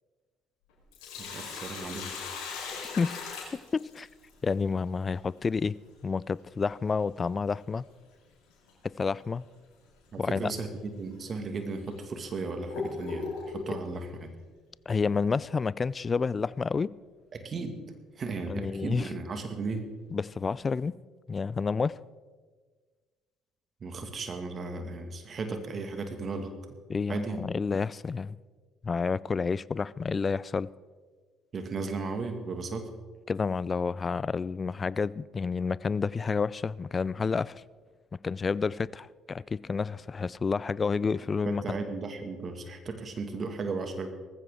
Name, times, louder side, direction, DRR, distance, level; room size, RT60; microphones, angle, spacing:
Sink (filling or washing), 0.7-4.3 6.7-6.8 8.7-8.9 9.4-9.5 10.3-10.4 11.1-11.2 11.9-13.8, left 5 dB, 75° left, 4.4 m, -38 dB
voice 1, 1.2-2.1 10.1-14.4 17.3-19.9 23.8-26.8 27.1-27.4 31.5-32.9 41.4-44.1, right 3 dB, 45° right, 2.0 m, -35 dB
voice 2, 2.8-3.2 3.5-4.1 4.4-5.8 6.0-7.9 8.8-9.4 10.2-10.5 14.9-16.9 18.5-19.1 20.1-20.9 21.3-21.9 26.9-28.4 28.8-30.7 33.3-37.6 38.2-41.8, left 5 dB, 35° left, 0.4 m, -29 dB
19.0 x 15.0 x 3.7 m
hypercardioid pair, 55°, 0 cm